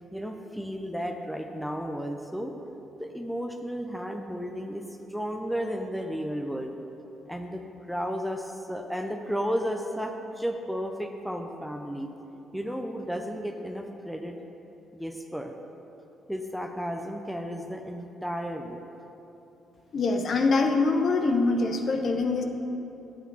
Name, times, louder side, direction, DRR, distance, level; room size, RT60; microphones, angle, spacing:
voice 1, 0.1-2.6 3.0-4.8 5.1-6.7 7.3-12.1 12.5-14.4 14.9-15.5 16.3-18.8, equal, ahead, 4 dB, 0.6 m, -33 dB
voice 2, 19.9-22.4, left 3 dB, 50° left, 5 dB, 0.8 m, -24 dB
8.8 x 8.2 x 4.0 m, 3.0 s
cardioid pair, 90°, 0 cm